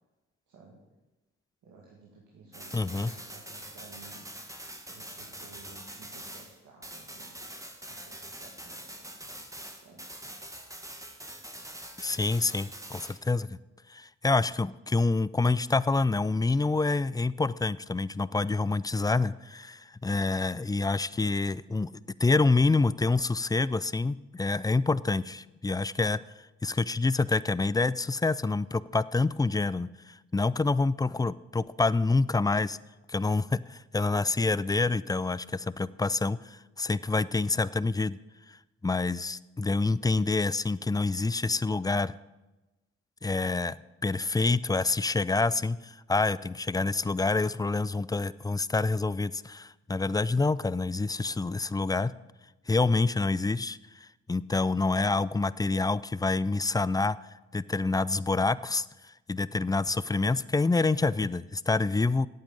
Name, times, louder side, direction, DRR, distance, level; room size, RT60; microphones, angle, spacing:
voice 1, 0.5-0.8 1.6-4.3 4.9-9.4 9.7-10.1, right 4 dB, 75° right, -3 dB, 2.1 m, -54 dB
sound 1, 2.5-6.6 6.8-13.2, right 1 dB, 10° right, 1.7 m, -44 dB
voice 2, 2.7-3.1 12.0-13.6 13.9-21.9 22.2-26.2 26.6-32.8 33.1-38.2 38.8-42.1 43.2-43.8 44.0-52.1 52.7-57.2 57.5-58.9 59.3-62.3, left 3 dB, 15° left, 18 dB, 0.4 m, -27 dB
8.8 x 7.7 x 7.6 m, 1.1 s
supercardioid pair, 45°, 30 cm